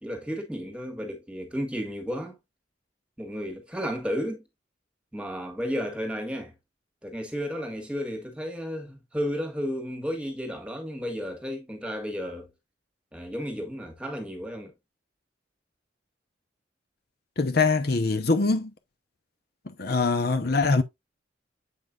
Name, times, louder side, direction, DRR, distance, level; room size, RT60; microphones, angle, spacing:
voice 1, 0.0-2.4 3.2-4.4 5.1-6.5 7.0-12.5 13.1-14.7, equal, 5° right, 1.6 m, -33 dB
voice 2, 17.4-18.7 19.8-20.8, left 3 dB, 55° left, 0.8 m, -23 dB
8.0 x 5.4 x 2.4 m
head